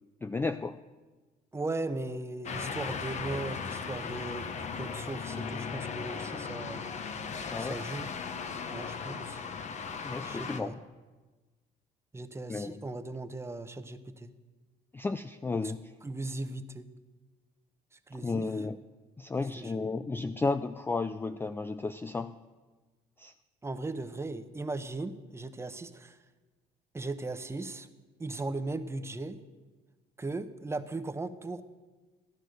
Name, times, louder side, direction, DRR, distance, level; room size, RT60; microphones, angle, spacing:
voice 1, 0.2-0.8 7.5-7.8 10.0-10.8 12.5-12.8 14.9-15.9 18.2-18.8 19.2-22.4 23.2-23.3, left 3 dB, 15° left, 11 dB, 0.3 m, -33 dB
voice 2, 1.5-6.8 7.6-8.1 8.7-9.4 10.2-10.8 12.1-14.3 16.0-16.9 18.1-18.5 19.6-19.7 23.6-26.2 26.9-27.9 28.2-29.4 30.2-31.6, right 2 dB, 15° right, 10 dB, 0.8 m, -38 dB
sound 1, 2.4-10.6, left 5 dB, 45° left, 0.9 m, -37 dB
15.0 x 10.5 x 6.5 m, 1.3 s
cardioid pair, 110°, 17 cm